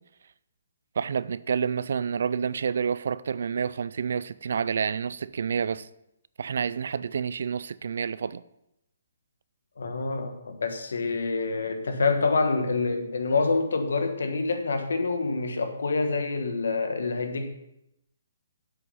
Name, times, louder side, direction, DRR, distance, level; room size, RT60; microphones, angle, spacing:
voice 1, 1.0-5.9 6.4-8.4, right 6 dB, 55° right, 0.3 m, -29 dB
voice 2, 9.8-17.5, left 3 dB, 80° left, 1.3 m, -27 dB
7.6 x 6.3 x 5.6 m
hypercardioid pair, 175°, 0 cm